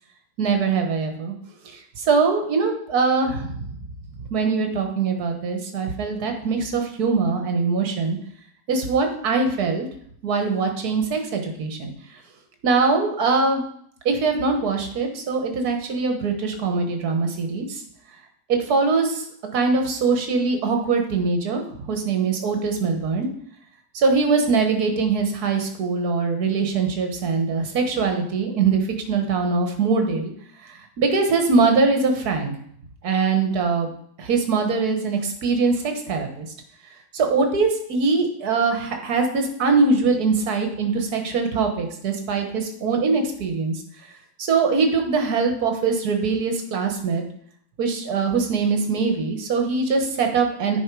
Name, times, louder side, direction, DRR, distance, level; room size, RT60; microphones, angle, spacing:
voice 1, 0.4-1.3 2.0-3.7 4.3-8.2 8.7-9.9 10.2-11.9 12.6-13.6 14.0-17.8 18.5-19.2 19.5-23.3 23.9-30.3 30.6-32.5 33.0-33.9 34.2-36.5 37.1-43.8 44.4-47.2 47.8-50.8, right 4 dB, 55° right, 5 dB, 1.6 m, -22 dB
10.0 x 5.5 x 4.7 m, 0.66 s
omnidirectional pair, 2.1 m